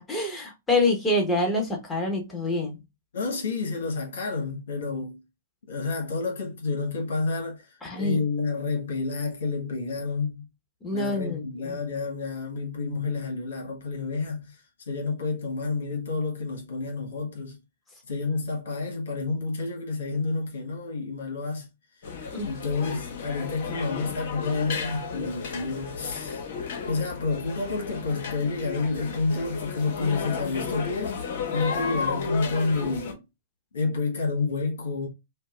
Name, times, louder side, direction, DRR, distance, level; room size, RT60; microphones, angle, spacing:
voice 1, 0.1-2.8 7.8-8.2 10.8-11.8 22.3-22.5, left 2 dB, 15° left, 1.5 m, -26 dB
voice 2, 3.1-5.2 5.7-10.4 10.9-17.6 18.0-21.7 22.5-26.5 26.9-33.2 33.7-35.1, left 3 dB, 75° left, 1.4 m, -29 dB
sound 1, 22.0-33.1, left 5 dB, 60° left, 1.2 m, -33 dB
5.2 x 2.3 x 2.4 m
hypercardioid pair, 115°, 0 cm